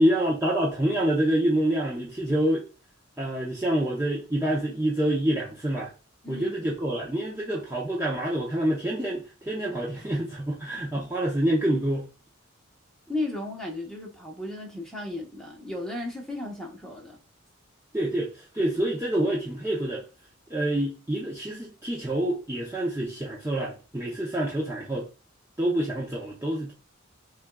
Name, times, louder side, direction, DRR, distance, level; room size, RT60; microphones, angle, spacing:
voice 1, 0.0-2.6 3.2-5.9 6.3-12.1 17.9-20.0 20.5-25.1 25.6-26.7, right 1 dB, 15° right, 0.6 m, -27 dB
voice 2, 13.1-17.2, left 2 dB, ahead, 1.0 m, -35 dB
6.0 x 2.4 x 2.3 m
head